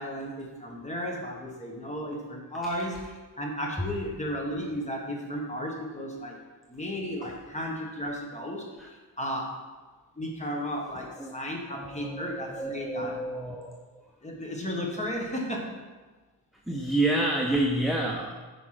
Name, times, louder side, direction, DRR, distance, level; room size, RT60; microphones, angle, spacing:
voice 1, 0.0-3.0 3.4-6.3 6.7-8.6 9.2-9.5 10.2-13.2 14.2-15.7, equal, 15° left, 0 dB, 1.5 m, -34 dB
voice 2, 11.7-13.7 16.7-18.4, right 1 dB, ahead, -1 dB, 0.6 m, -29 dB
9.9 x 5.2 x 5.0 m, 1.3 s
wide cardioid pair, 150°, 40 cm